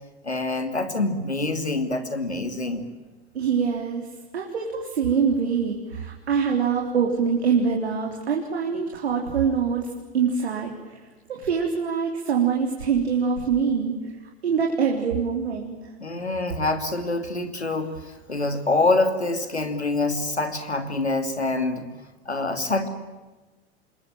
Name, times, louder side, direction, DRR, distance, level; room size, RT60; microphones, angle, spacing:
voice 1, 0.2-2.9 16.0-21.9 22.3-22.9, left 2 dB, 90° left, 8 dB, 2.8 m, -25 dB
voice 2, 3.3-4.1 4.3-9.9 10.1-10.7 11.3-13.9 14.4-15.7, right 6 dB, 70° right, 1 dB, 3.8 m, -24 dB
27.0 x 21.5 x 9.0 m, 1.2 s
figure-of-eight pair, 80°, 32 cm